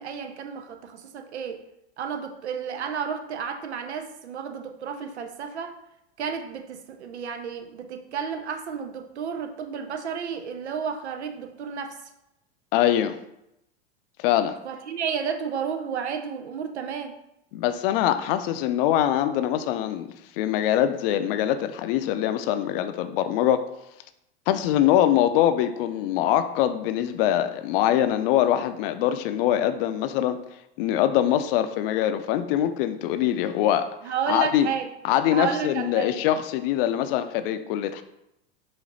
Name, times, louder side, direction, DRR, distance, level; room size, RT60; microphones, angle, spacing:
voice 1, 0.0-1.6 2.0-5.7 6.2-12.0 14.6-17.1 34.0-34.9 35.3-36.1, right 7 dB, 85° right, 7 dB, 0.6 m, -32 dB
voice 2, 12.7-13.2 14.2-14.5 17.5-23.6 24.5-30.4 30.8-33.9 34.3-34.7 35.0-38.0, left 11 dB, 60° left, 10 dB, 0.5 m, -23 dB
5.0 x 2.6 x 4.0 m, 0.84 s
hypercardioid pair, 95°, 33 cm